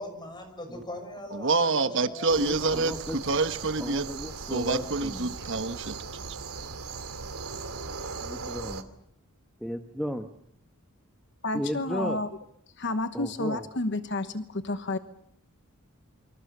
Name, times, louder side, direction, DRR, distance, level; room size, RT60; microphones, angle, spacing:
voice 1, 0.0-2.7, left 1 dB, 20° left, 6.1 m, -41 dB
voice 2, 1.3-4.1 4.4-6.0, right 3 dB, 55° right, 1.3 m, -27 dB
sound 1, 2.3-8.8, right 4 dB, 85° right, 2.4 m, -38 dB
voice 3, 2.4-3.2 3.8-5.4 8.2-8.8 9.6-10.3 11.5-12.2 13.1-13.6, equal, ahead, 1.3 m, -35 dB
voice 4, 11.4-12.3 12.8-15.0, left 2 dB, 55° left, 1.2 m, -30 dB
29.0 x 25.0 x 6.8 m
head